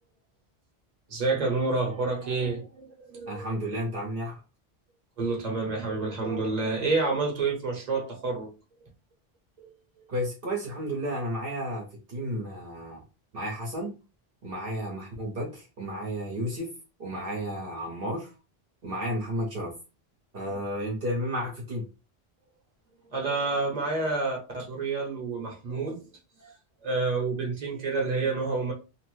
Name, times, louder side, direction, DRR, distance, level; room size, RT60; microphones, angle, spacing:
voice 1, 1.1-3.5 5.2-8.5 9.6-9.7 20.5-20.6 23.1-26.1 26.4-26.5 26.8-28.7, right 3 dB, 40° right, 1.1 m, -29 dB
voice 2, 3.3-4.4 10.1-13.0 13.3-13.9 14.4-16.7 17.0-18.3 18.8-19.7 20.3-21.8, equal, 65° right, 1.1 m, -32 dB
3.0 x 2.1 x 3.1 m
omnidirectional pair, 1.0 m